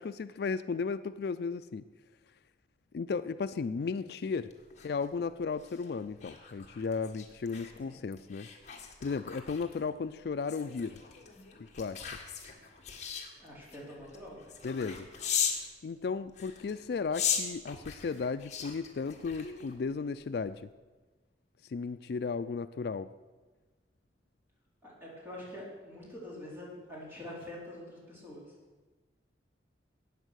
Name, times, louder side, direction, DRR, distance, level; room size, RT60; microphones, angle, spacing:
voice 1, 0.0-1.8 2.9-4.5 4.8-8.5 9.0-11.0 11.6-12.1 14.6-15.1 15.8-20.7 21.7-23.1, left 5 dB, 60° left, 12 dB, 0.4 m, -35 dB
sound 1, 4.5-15.7 16.3-19.9 20.3-20.6, left 7 dB, 40° left, 1.6 m, -38 dB
voice 2, 13.4-14.4 24.8-28.4, left 1 dB, 10° right, -5 dB, 4.2 m, -45 dB
13.5 x 8.9 x 6.3 m, 1.3 s
head